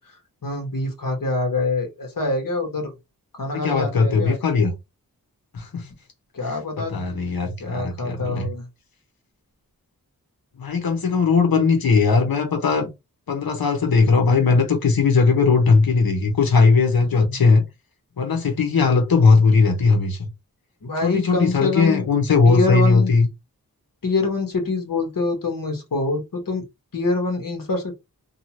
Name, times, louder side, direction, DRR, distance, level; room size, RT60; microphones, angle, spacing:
voice 1, 0.4-2.9 3.4-4.4 6.3-7.0 7.6-8.7 20.8-22.1 22.5-23.1 24.0-26.6 26.9-27.9, left 3 dB, 65° left, 1.2 m, -25 dB
voice 2, 3.5-4.7 5.5-5.9 6.5-8.5 10.6-12.9 13.3-17.6 18.2-20.3 21.0-23.3, left 4 dB, 85° left, 1.0 m, -18 dB
2.7 x 2.4 x 2.9 m
wide cardioid pair, 70°, 35 cm